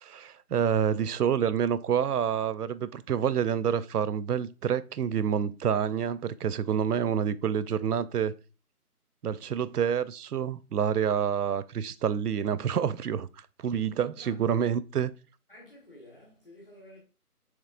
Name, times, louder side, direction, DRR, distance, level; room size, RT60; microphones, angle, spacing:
voice 1, 0.0-8.3 9.2-13.3 13.6-15.1, right 8 dB, 80° right, 0.5 m, -28 dB
voice 2, 15.5-17.0, left 1 dB, 35° left, 1.3 m, -52 dB
7.3 x 3.1 x 2.3 m
figure-of-eight pair, 175°, 46 cm